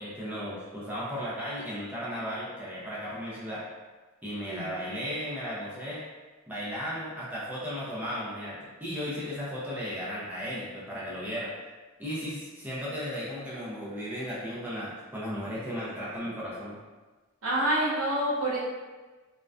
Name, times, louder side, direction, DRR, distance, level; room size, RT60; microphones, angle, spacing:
voice 1, 0.0-3.6 4.2-6.0 6.5-11.5 12.0-16.8, equal, 10° right, -8 dB, 0.4 m, -35 dB
voice 2, 4.4-4.7 17.4-18.6, right 1 dB, 85° right, -6 dB, 0.8 m, -27 dB
2.4 x 2.1 x 2.3 m, 1.3 s
head